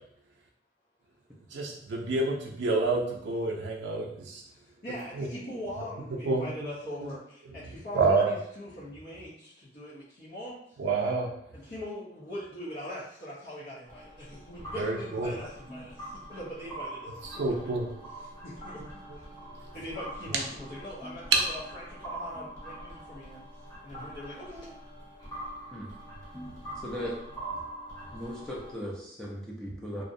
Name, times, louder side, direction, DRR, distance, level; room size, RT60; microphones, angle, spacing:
voice 1, 1.5-4.4 5.2-5.3 6.2-6.5 7.0-7.1 7.9-8.3 10.8-11.3 14.8-15.3 17.4-17.9, right 3 dB, 80° right, -1 dB, 0.4 m, -28 dB
voice 2, 4.8-10.5 11.6-16.0 16.3-17.1 18.4-18.8 19.7-23.4 23.8-24.7, left 1 dB, 55° left, -11 dB, 0.7 m, -41 dB
sound 1, 13.9-28.7, right 1 dB, 20° left, 0.9 m, -43 dB
voice 3, 26.8-27.1 28.1-30.0, equal, 5° left, -5 dB, 0.4 m, -37 dB
2.6 x 2.0 x 2.5 m, 0.71 s
head